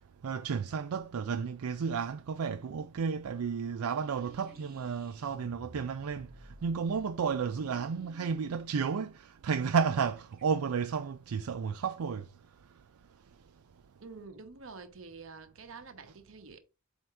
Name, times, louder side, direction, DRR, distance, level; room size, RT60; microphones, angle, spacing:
voice 1, 0.2-6.3 6.6-12.2, right 6 dB, 85° right, 0.4 m, -32 dB
sound 1, 3.7-10.4, right 1 dB, 40° right, 1.3 m, -55 dB
voice 2, 14.0-16.6, right 4 dB, 65° right, 1.0 m, -48 dB
7.7 x 2.8 x 4.7 m
head